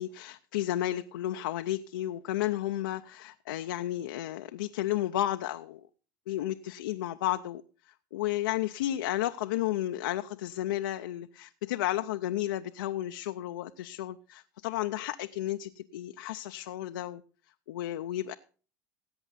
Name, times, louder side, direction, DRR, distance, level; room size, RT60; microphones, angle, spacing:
voice 1, 0.0-5.9 6.3-7.6 8.1-17.2 17.7-18.3, left 13 dB, 85° left, 0.5 m, -32 dB
17.0 x 7.9 x 4.1 m
hypercardioid pair, 80°, 10 cm